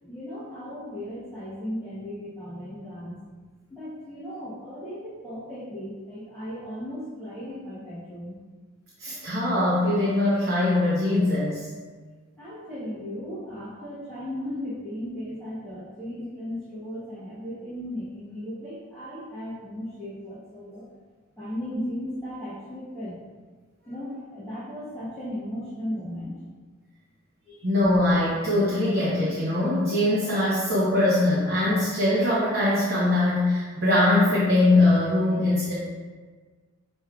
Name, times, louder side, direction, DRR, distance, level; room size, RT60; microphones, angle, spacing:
voice 1, 0.0-3.1 3.7-8.4 12.4-20.8 21.4-23.2 23.8-26.4 27.5-27.6, equal, 5° left, -15 dB, 1.1 m, -36 dB
voice 2, 9.0-11.6 27.6-35.7, left 1 dB, 45° right, -8 dB, 0.9 m, -22 dB
6.1 x 3.2 x 2.4 m, 1.4 s
head